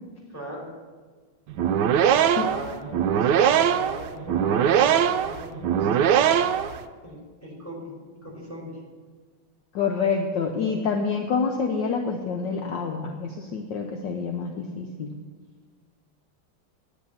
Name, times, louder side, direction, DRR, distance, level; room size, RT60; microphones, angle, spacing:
voice 1, 0.3-0.7 1.9-6.3 7.0-7.9 8.2-8.8, equal, 5° left, -2 dB, 4.6 m, -39 dB
sound 1, 1.5-6.8, right 9 dB, 70° right, 1.1 m, -21 dB
voice 2, 9.7-15.1, left 5 dB, 65° left, 3 dB, 1.5 m, -27 dB
10.5 x 9.9 x 7.2 m, 1.5 s
omnidirectional pair, 2.2 m